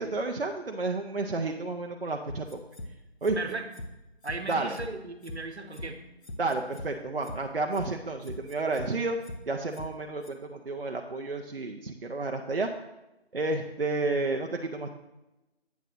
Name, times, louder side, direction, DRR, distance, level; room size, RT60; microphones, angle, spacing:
voice 1, 0.0-2.6 3.2-3.4 4.5-4.7 6.4-9.2 9.5-12.8 13.3-14.9, right 3 dB, 60° right, 3 dB, 0.6 m, -31 dB
sound 1, 2.3-2.9 3.2-3.4 3.7-3.9 4.2-4.9 5.2-5.4 5.7-5.9 6.2-6.9 7.2-7.4 7.7-7.9 8.2-8.9 9.2-9.4 9.7-9.9 10.2-10.3, left 1 dB, 85° left, 1.2 m, -40 dB
voice 2, 4.2-6.2, right 3 dB, 85° right, 7 dB, 1.1 m, -37 dB
8.1 x 3.7 x 6.3 m, 0.96 s
figure-of-eight pair, 175°, 32 cm